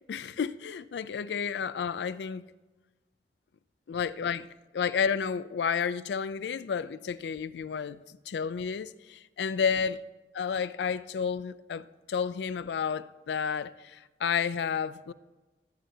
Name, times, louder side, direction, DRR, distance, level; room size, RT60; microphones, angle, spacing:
voice 1, 0.1-2.4 3.9-4.5 4.7-10.0 10.3-15.1, left 6 dB, 80° left, 0.4 m, -31 dB
15.5 x 7.8 x 2.7 m
head